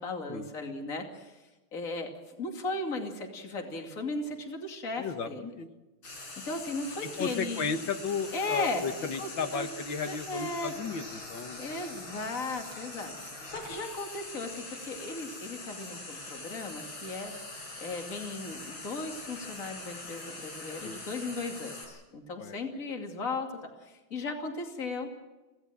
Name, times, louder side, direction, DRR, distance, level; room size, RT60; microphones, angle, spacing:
voice 1, 0.0-1.4 1.7-2.1 2.4-5.5 6.1-7.7 8.3-8.8 9.2-9.7 10.0-10.7 11.6-17.3 17.8-23.5 23.8-25.1, left 3 dB, 40° left, 3 dB, 2.9 m, -36 dB
voice 2, 5.0-5.7 7.0-11.6 20.8-21.0 22.4-22.6, left 5 dB, 70° left, 7 dB, 2.2 m, -34 dB
Frying (food), 6.0-21.8, left 2 dB, 90° left, 6.4 m, -43 dB
25.0 x 17.5 x 7.5 m, 1.2 s
omnidirectional pair, 2.2 m